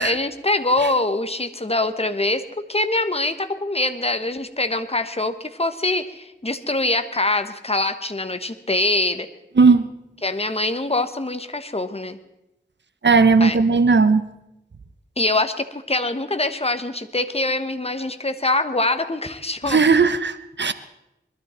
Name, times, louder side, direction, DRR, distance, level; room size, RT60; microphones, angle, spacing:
voice 1, 0.0-2.4 2.7-9.3 10.2-12.2 13.4-13.6 15.2-19.8, left 2 dB, 30° left, 9 dB, 1.2 m, -24 dB
voice 2, 9.6-9.9 13.0-14.2 19.6-20.7, right 4 dB, 70° right, 13 dB, 0.8 m, -16 dB
21.5 x 13.0 x 4.4 m, 0.88 s
wide cardioid pair, 45°, 19 cm